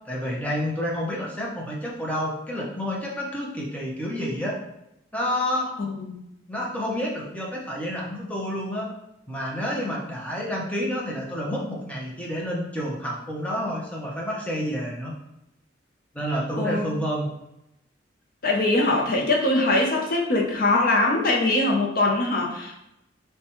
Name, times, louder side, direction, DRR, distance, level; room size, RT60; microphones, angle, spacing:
voice 1, 0.1-4.6 5.1-5.7 6.5-8.9 9.3-15.1 16.1-17.3, equal, 5° left, -4 dB, 0.7 m, -29 dB
voice 2, 5.9-6.2 16.6-16.8 18.4-22.7, left 2 dB, 50° left, -1 dB, 0.6 m, -22 dB
6.5 x 2.2 x 3.0 m, 0.85 s
head